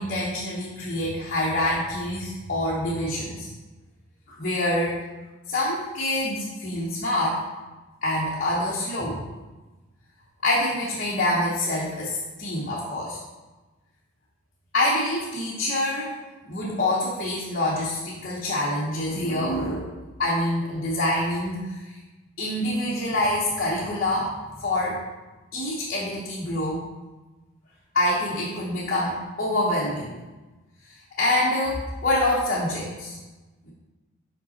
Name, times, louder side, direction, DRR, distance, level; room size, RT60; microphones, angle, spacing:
voice 1, 0.0-3.5 4.3-5.0 5.5-7.4 8.0-9.2 10.4-13.2 14.7-16.1 16.4-21.9 22.4-24.3 24.6-25.0 25.5-26.8 27.9-30.1 30.8-33.2, left 1 dB, 45° left, -6 dB, 1.0 m, -26 dB
5.4 x 5.3 x 4.2 m, 1.2 s
head